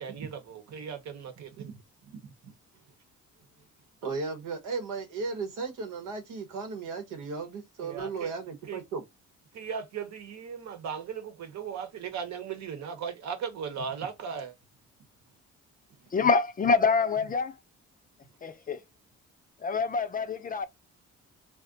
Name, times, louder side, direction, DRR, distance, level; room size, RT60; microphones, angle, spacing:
voice 1, 0.0-1.7 7.8-8.3 8.7-8.8 9.5-14.5, right 6 dB, 65° right, 0.9 m, -37 dB
voice 2, 2.2-2.5 4.0-9.0, right 4 dB, 90° right, 1.0 m, -36 dB
voice 3, 16.1-17.6 18.4-18.8 19.6-20.7, left 4 dB, 30° left, 0.4 m, -26 dB
2.4 x 2.1 x 3.7 m
cardioid pair, 90°, 30 cm